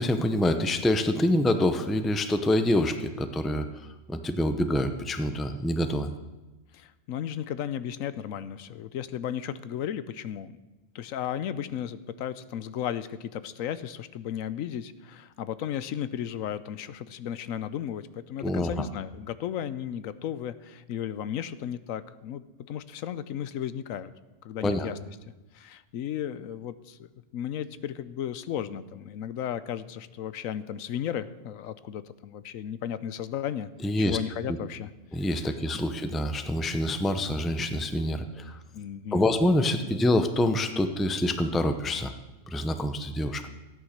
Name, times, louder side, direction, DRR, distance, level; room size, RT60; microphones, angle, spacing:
voice 1, 0.0-3.7 4.1-6.1 18.4-18.7 24.6-24.9 33.8-34.2 35.1-38.6 39.1-42.1 42.5-43.5, left 1 dB, ahead, 9 dB, 0.5 m, -26 dB
voice 2, 6.7-10.6 10.9-24.1 24.4-25.0 25.5-27.1 27.3-33.7 34.0-34.9 35.3-36.0 38.7-39.2 39.8-40.0, left 10 dB, 85° left, 14 dB, 1.1 m, -35 dB
14.5 x 9.2 x 6.6 m, 1.1 s
omnidirectional pair, 1.4 m